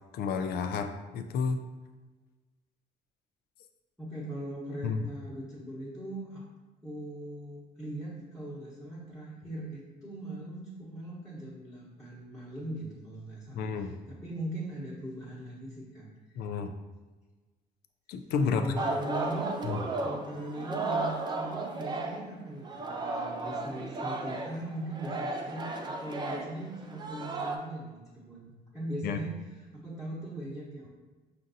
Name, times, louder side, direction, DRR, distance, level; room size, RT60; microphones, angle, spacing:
voice 1, 0.1-1.6 4.8-5.0 13.5-14.0 16.4-16.7 18.1-18.8 19.6-19.8 29.0-29.2, left 5 dB, 70° left, 7 dB, 0.4 m, -31 dB
voice 2, 4.0-6.4 6.8-16.4 18.4-19.5 20.0-29.4 29.8-30.9, right 1 dB, ahead, -9 dB, 1.0 m, -40 dB
Singing, 18.7-22.3 22.6-27.6, right 2 dB, 25° right, 0.4 m, -34 dB
5.1 x 2.5 x 2.6 m, 1.2 s
cardioid pair, 110°, 17 cm